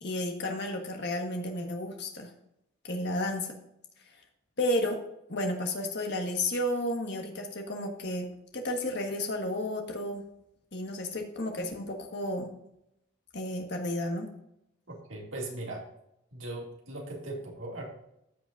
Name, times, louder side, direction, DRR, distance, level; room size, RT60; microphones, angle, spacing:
voice 1, 0.0-2.3 2.8-3.6 4.6-5.0 5.3-8.3 8.5-10.2 10.7-12.5 13.3-14.3, left 1 dB, 50° left, 2 dB, 1.6 m, -32 dB
voice 2, 14.9-15.9 16.3-17.9, right 2 dB, 65° right, -1 dB, 2.5 m, -39 dB
15.0 x 6.1 x 2.6 m, 0.79 s
head